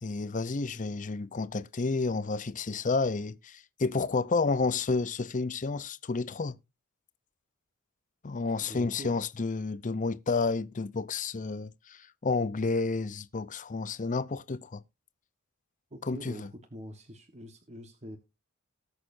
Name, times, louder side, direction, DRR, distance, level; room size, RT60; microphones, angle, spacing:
voice 1, 0.0-6.6 8.2-14.8 16.1-16.5, left 4 dB, 35° left, 0.6 m, -30 dB
voice 2, 8.6-9.1 15.9-18.2, equal, 30° right, 1.3 m, -44 dB
19.0 x 6.6 x 2.6 m
head